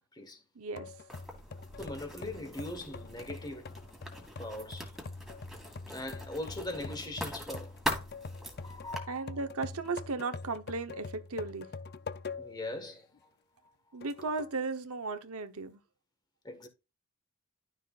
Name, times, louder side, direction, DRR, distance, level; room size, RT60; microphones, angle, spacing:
voice 1, 0.5-1.0 9.1-11.7 13.9-15.8, right 3 dB, 75° right, 1.0 m, -36 dB
sound 1, 0.8-12.7 13.1-13.2 14.0-14.6, left 4 dB, 45° left, 0.5 m, -44 dB
Writing, 1.1-9.0, equal, ahead, 2.2 m, -42 dB
voice 2, 1.8-3.7 4.4-4.9 5.9-7.8 8.6-9.2 12.4-13.1 16.4-16.7, left 1 dB, 20° left, 1.6 m, -40 dB
12.0 x 6.6 x 2.5 m
head